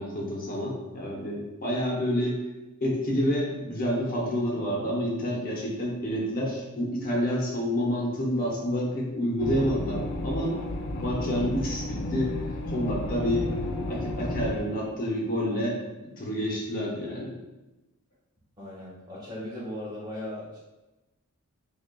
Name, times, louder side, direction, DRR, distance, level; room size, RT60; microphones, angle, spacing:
voice 1, 0.0-2.4 2.8-10.6 11.0-12.4 12.7-13.5 13.8-15.8 16.2-17.4, equal, 40° left, -2 dB, 0.8 m, -28 dB
sound 1, 9.4-14.6, left 1 dB, 60° left, 0.4 m, -32 dB
voice 2, 18.6-20.6, left 1 dB, 20° right, -7 dB, 1.2 m, -37 dB
5.0 x 2.4 x 2.2 m, 1.1 s
head